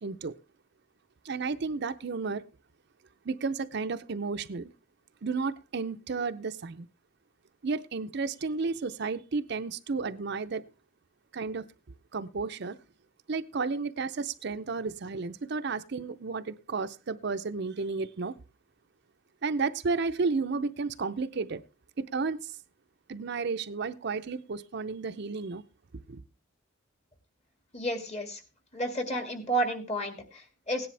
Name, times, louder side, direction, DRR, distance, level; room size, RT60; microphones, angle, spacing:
voice 1, 0.0-0.3 1.2-2.4 3.2-4.7 5.2-6.9 7.6-10.6 11.3-11.7 12.1-12.8 13.3-18.3 19.4-21.6 22.1-22.6 23.1-25.6 26.1-26.2, right 4 dB, 60° right, 0.6 m, -32 dB
voice 2, 27.7-28.4 28.7-30.9, right 1 dB, 35° left, 2.1 m, -31 dB
17.0 x 10.5 x 3.3 m
head